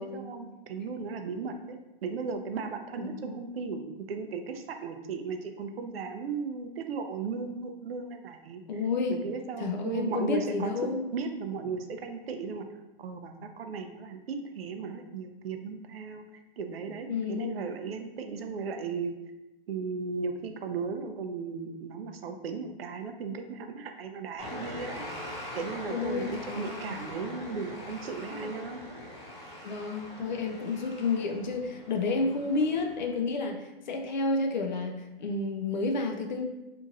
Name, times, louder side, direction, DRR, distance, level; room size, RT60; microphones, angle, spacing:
voice 1, 0.0-8.6 9.1-12.7 13.0-19.1 19.7-25.1 25.5-26.2 26.6-28.8, right 5 dB, 75° right, 6 dB, 0.5 m, -36 dB
voice 2, 3.0-3.4 8.7-9.2 9.6-11.1 17.1-17.6 25.9-26.9 28.3-28.5 29.6-36.4, left 3 dB, 50° left, 4 dB, 0.4 m, -31 dB
sound 1, 24.4-33.1, left 1 dB, 30° left, 0.8 m, -42 dB
2.9 x 2.6 x 2.5 m, 1.0 s
hypercardioid pair, 160°, 30 cm